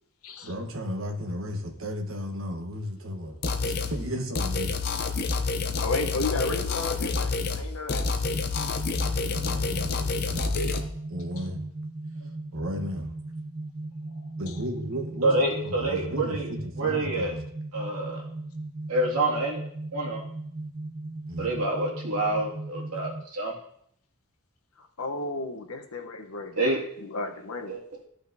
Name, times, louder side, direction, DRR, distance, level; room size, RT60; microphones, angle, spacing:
voice 1, 0.4-3.4 3.6-4.8 9.2-10.8 11.1-11.6 12.2-13.1 14.4-15.3 15.6-17.4 21.3-21.5, equal, 65° right, 3 dB, 1.2 m, -35 dB
sound 1, 3.4-3.9 4.3-7.6 7.9-10.8, left 4 dB, 45° left, 0.6 m, -28 dB
voice 2, 5.8-8.1 9.4-9.5 24.8-27.7, left 3 dB, 80° left, 5 dB, 0.9 m, -33 dB
sound 2, 8.2-23.2, right 2 dB, 40° right, 0.5 m, -37 dB
voice 3, 15.2-16.5 16.8-17.3 17.7-18.2 18.9-19.6 19.9-20.2 21.4-23.5 26.6-26.8 27.7-27.8, right 2 dB, 90° right, -3 dB, 2.3 m, -27 dB
14.0 x 5.0 x 2.7 m, 0.67 s
head